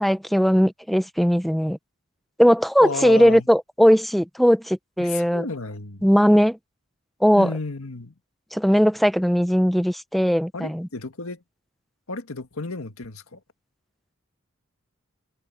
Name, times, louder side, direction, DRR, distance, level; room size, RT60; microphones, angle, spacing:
voice 1, 0.0-1.8 2.4-5.5 6.0-6.6 7.2-7.5 8.5-10.9, equal, ahead, 0.5 m, -19 dB
voice 2, 2.8-3.5 5.0-6.1 7.4-8.1 10.5-11.4 12.1-13.4, left 3 dB, 80° left, 1.8 m, -32 dB
head